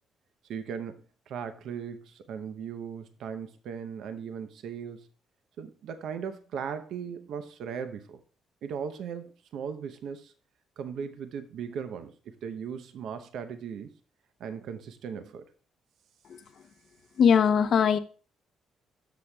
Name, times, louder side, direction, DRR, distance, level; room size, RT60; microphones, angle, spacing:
voice 1, 0.5-5.1 5.6-8.2 8.6-10.3 10.8-13.9 14.4-15.5, right 7 dB, 75° right, 0.7 m, -38 dB
voice 2, 17.2-18.0, left 7 dB, 60° left, 0.7 m, -20 dB
13.0 x 6.6 x 2.3 m
cardioid pair, 90°, 0 cm